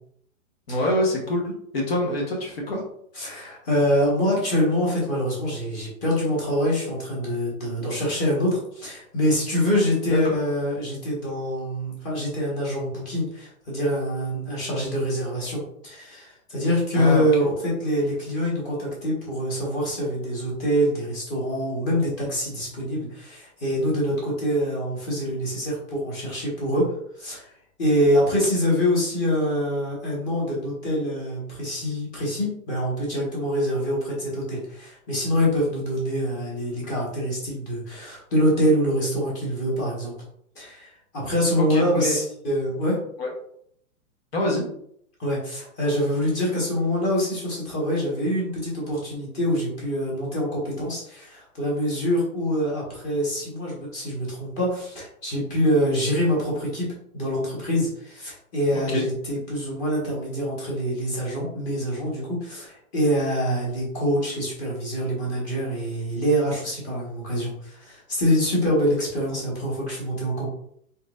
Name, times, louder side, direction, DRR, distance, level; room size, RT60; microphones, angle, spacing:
voice 1, 0.7-2.8 10.1-10.2 16.9-17.3 41.6-42.1 43.2-43.3 44.3-44.6 58.9-59.0, left 1 dB, 45° left, -1 dB, 1.3 m, -25 dB
voice 2, 3.1-27.5 27.8-40.2 40.5-43.0 45.2-56.9 57.1-70.5, equal, 15° left, -4 dB, 1.5 m, -25 dB
4.3 x 4.2 x 2.5 m, 0.67 s
hypercardioid pair, 165°, 43 cm